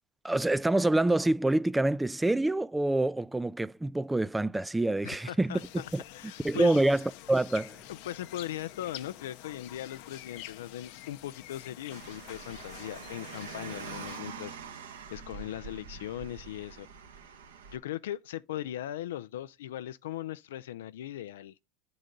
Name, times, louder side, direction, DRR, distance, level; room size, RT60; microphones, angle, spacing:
voice 1, 0.2-5.6 5.9-6.0 6.4-7.8, right 2 dB, 10° right, 0.3 m, -26 dB
voice 2, 5.0-6.8 7.9-14.6 15.1-16.9 17.7-21.5, left 12 dB, 80° left, 0.3 m, -39 dB
sound 1, 5.5-14.2, left 13 dB, 65° left, 0.7 m, -47 dB
Car, 11.9-17.8, right 6 dB, 85° right, 1.2 m, -45 dB
9.7 x 3.9 x 5.2 m
hypercardioid pair, 100°, 0 cm